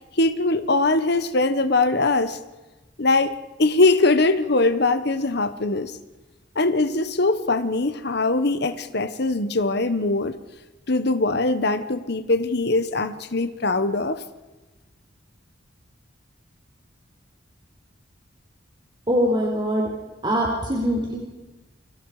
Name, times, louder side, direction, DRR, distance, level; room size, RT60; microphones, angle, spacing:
voice 1, 0.2-2.4 3.0-3.3 3.6-5.9 6.5-10.3 10.9-14.2, left 2 dB, 55° left, 1.2 m, -21 dB
voice 2, 19.1-19.9 20.2-21.2, equal, 25° right, 3.8 m, -22 dB
29.5 x 25.5 x 5.0 m
head